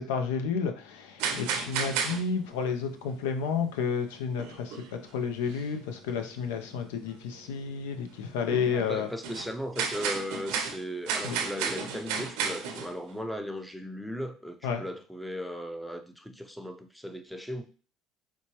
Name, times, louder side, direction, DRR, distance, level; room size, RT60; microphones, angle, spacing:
voice 1, 0.0-9.1 11.2-11.4 14.6-14.8, left 6 dB, 85° left, 6 dB, 0.5 m, -31 dB
sound 1, 1.2-2.5 2.7-3.1 3.8-3.9 4.4-5.1 5.4-5.7 6.1-6.2 6.6-6.7 7.4-7.6 8.2-8.4 8.7-13.2, right 6 dB, 75° right, 0.6 m, -32 dB
voice 2, 8.5-17.6, equal, ahead, 6 dB, 0.5 m, -37 dB
4.3 x 2.2 x 2.9 m, 0.39 s
supercardioid pair, 80°, 0 cm